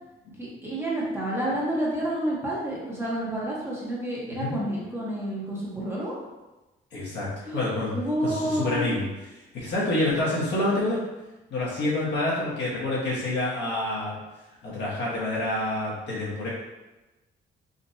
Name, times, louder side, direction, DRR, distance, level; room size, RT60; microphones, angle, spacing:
voice 1, 0.4-6.1 7.4-7.7 7.9-8.9, right 1 dB, 10° right, -6 dB, 1.1 m, -29 dB
voice 2, 6.9-7.3 7.5-8.0 8.2-9.0 9.5-11.0 11.5-14.1 14.6-16.5, left 2 dB, 60° left, -6 dB, 1.4 m, -27 dB
3.9 x 2.6 x 2.7 m, 1.1 s
cardioid pair, 90°, 20 cm